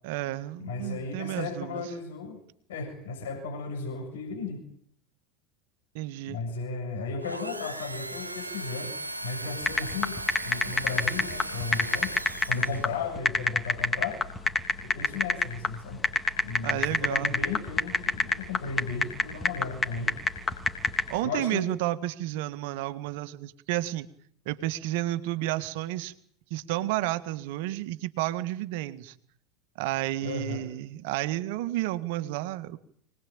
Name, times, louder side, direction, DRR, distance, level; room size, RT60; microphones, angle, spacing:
voice 1, 0.0-1.8 5.9-6.4 16.6-17.3 21.1-24.1 24.5-26.1 26.5-29.2 29.8-32.8, right 15 dB, 55° right, 12 dB, 1.7 m, -31 dB
voice 2, 0.6-2.4 2.7-4.7 6.3-9.0 9.2-12.2 12.5-14.2 14.8-16.0 16.4-20.2 21.2-21.7 30.2-30.7, left 4 dB, 65° left, 4 dB, 7.0 m, -35 dB
sound 1, 7.2-13.0, right 2 dB, 90° right, 1.4 m, -37 dB
sound 2, 9.6-21.2, left 4 dB, 20° left, 3.3 m, -26 dB
24.5 x 20.0 x 8.9 m, 0.63 s
figure-of-eight pair, 80°, 0 cm